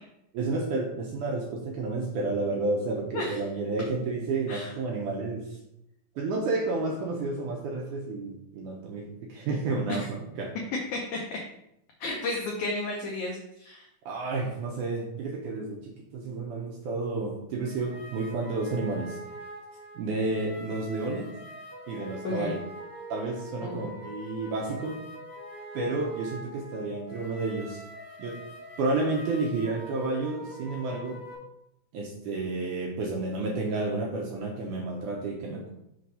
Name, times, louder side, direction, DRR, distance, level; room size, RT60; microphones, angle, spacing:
voice 1, 0.3-5.6 6.1-10.5 14.0-19.2 19.9-21.3 21.9-22.6 23.1-25.0 25.7-27.8 28.2-28.4 28.8-31.2 31.9-35.7, right 3 dB, 80° right, -1 dB, 1.8 m, -31 dB
voice 2, 10.9-11.4 12.0-13.9 22.2-22.5 23.6-23.9, left 2 dB, 85° left, -1 dB, 1.7 m, -33 dB
sound 1, 17.6-31.3, right 1 dB, 45° left, 0.7 m, -44 dB
6.4 x 3.4 x 5.4 m, 0.80 s
omnidirectional pair, 4.6 m